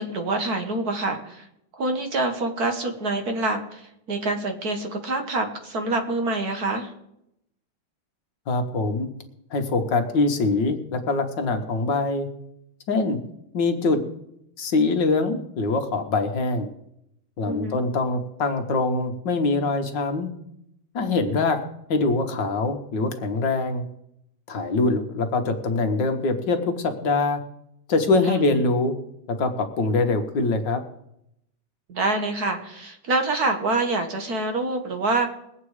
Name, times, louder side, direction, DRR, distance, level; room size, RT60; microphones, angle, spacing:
voice 1, 0.0-1.4 1.8-6.9 17.5-17.8 28.3-28.4 31.9-35.3, right 2 dB, 50° right, 5 dB, 1.7 m, -26 dB
voice 2, 8.5-9.1 9.5-12.3 12.9-13.2 13.5-14.0 14.6-16.7 17.4-20.3 20.9-21.6 21.9-23.8 24.5-27.4 27.9-29.0 29.3-30.8, left 3 dB, 65° left, 6 dB, 1.8 m, -23 dB
21.0 x 8.4 x 4.8 m, 0.79 s
omnidirectional pair, 2.2 m